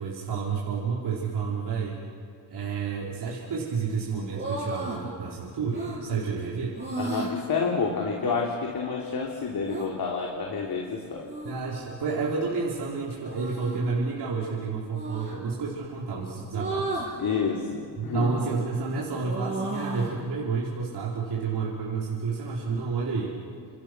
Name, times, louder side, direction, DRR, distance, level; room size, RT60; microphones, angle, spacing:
voice 1, 0.0-2.0 2.5-6.8 11.4-17.0 18.0-23.4, right 4 dB, 65° right, -4 dB, 4.5 m, -30 dB
sound 1, 4.3-5.0 5.7-6.0 6.7-7.3 9.6-9.9 11.2-11.9 13.2-13.8 14.9-15.4 16.5-17.1 18.0-18.5 18.9-20.2, right 2 dB, 25° right, 7.4 m, -34 dB
voice 2, 7.0-11.3 17.2-18.3, left 5 dB, 55° left, -1 dB, 3.4 m, -29 dB
30.0 x 27.5 x 6.3 m, 2.2 s
cardioid pair, 105°, 42 cm